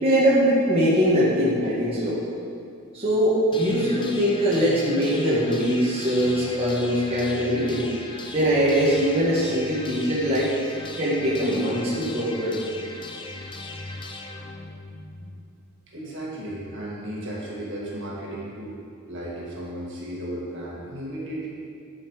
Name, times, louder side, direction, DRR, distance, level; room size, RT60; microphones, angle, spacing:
voice 1, 0.0-2.2 2.9-7.9 8.3-10.5 11.0-12.5, equal, 25° right, -8 dB, 1.6 m, -22 dB
sound 1, 3.5-15.5, left 2 dB, 20° left, 0.6 m, -38 dB
voice 2, 15.9-18.8 19.0-21.5, right 1 dB, 55° right, -5 dB, 2.1 m, -34 dB
10.5 x 5.7 x 5.0 m, 2.4 s
head